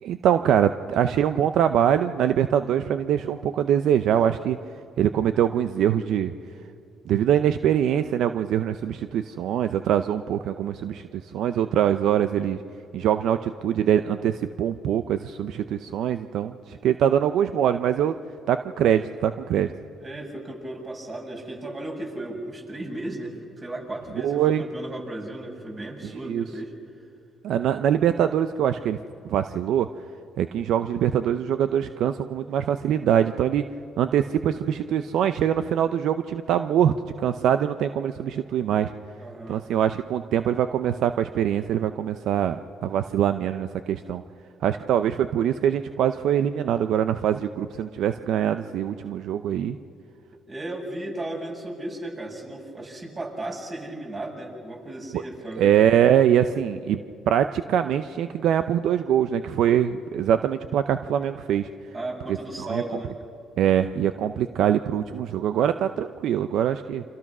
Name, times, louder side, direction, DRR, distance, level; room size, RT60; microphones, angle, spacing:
voice 1, 0.0-4.6 5.0-6.3 7.1-12.6 12.9-18.1 18.5-19.7 24.2-24.6 26.2-26.4 27.4-29.0 29.2-29.9 30.4-33.6 34.0-38.9 39.5-42.6 42.8-44.2 44.6-49.8 55.1-55.2 55.6-57.0 57.3-61.7 62.6-62.8 63.6-67.0, right 9 dB, 75° right, 10 dB, 0.6 m, -23 dB
voice 2, 20.0-26.7 39.2-39.6 44.8-45.0 50.5-55.8 61.9-63.2, right 1 dB, 35° right, 0 dB, 7.1 m, -35 dB
29.0 x 26.0 x 6.1 m, 2.6 s
supercardioid pair, 75°, 0 cm